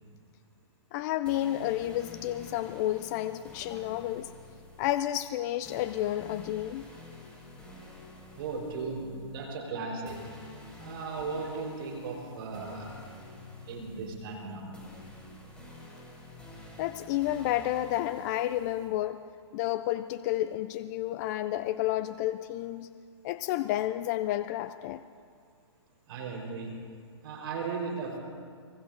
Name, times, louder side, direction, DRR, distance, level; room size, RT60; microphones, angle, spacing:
voice 1, 0.9-4.3 4.8-6.9 16.8-19.2 19.5-22.9 23.2-25.0, left 14 dB, 35° left, 12 dB, 0.5 m, -31 dB
sound 1, 1.3-18.9, left 2 dB, 5° left, 5.5 m, -49 dB
voice 2, 8.4-10.2 10.8-13.0 13.7-14.8 26.1-26.8 27.2-28.2, right 4 dB, 55° right, 1 dB, 4.3 m, -36 dB
24.5 x 22.5 x 2.6 m, 2.1 s
hypercardioid pair, 125°, 15 cm